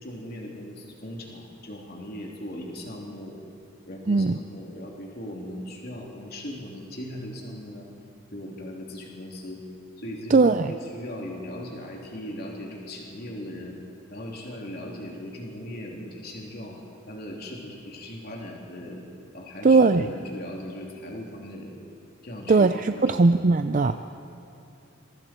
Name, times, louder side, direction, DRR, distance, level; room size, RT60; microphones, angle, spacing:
voice 1, 0.0-3.4 3.9-7.9 8.3-9.6 10.0-13.8 14.1-16.8 17.1-19.0 19.3-21.8 22.2-23.3 23.8-24.0, left 1 dB, 50° left, -1 dB, 3.3 m, -38 dB
voice 2, 4.1-4.4 10.3-10.7 19.6-20.0 22.5-24.0, right 3 dB, 40° right, 9 dB, 0.4 m, -19 dB
26.0 x 24.0 x 4.5 m, 2.8 s
head